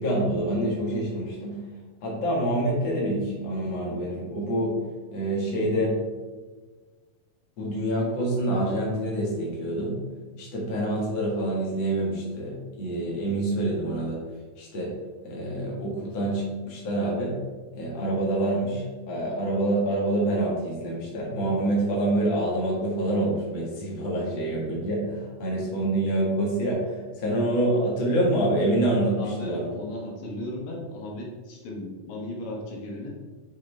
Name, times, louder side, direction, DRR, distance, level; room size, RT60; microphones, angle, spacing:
voice 1, 0.0-1.6 2.0-4.8 5.1-6.0 7.6-10.0 10.4-14.2 14.6-14.9 15.2-17.4 17.7-29.7, right 1 dB, 40° left, -4 dB, 1.9 m, -26 dB
voice 2, 29.2-33.1, left 1 dB, 80° left, -2 dB, 2.8 m, -36 dB
8.2 x 4.9 x 3.3 m, 1.3 s
omnidirectional pair, 4.0 m